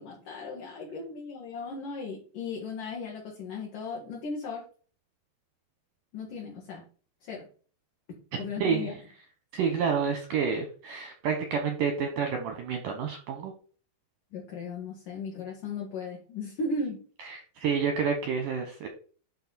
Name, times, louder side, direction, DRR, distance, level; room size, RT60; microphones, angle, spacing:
voice 1, 0.0-4.6 6.1-6.8 7.2-7.5 8.4-8.9 14.3-17.0, left 3 dB, 55° left, -3 dB, 3.1 m, -36 dB
voice 2, 8.3-8.9 9.5-13.5 17.3-18.9, right 6 dB, 75° right, 4 dB, 2.0 m, -29 dB
11.5 x 4.7 x 4.2 m, 0.41 s
omnidirectional pair, 5.1 m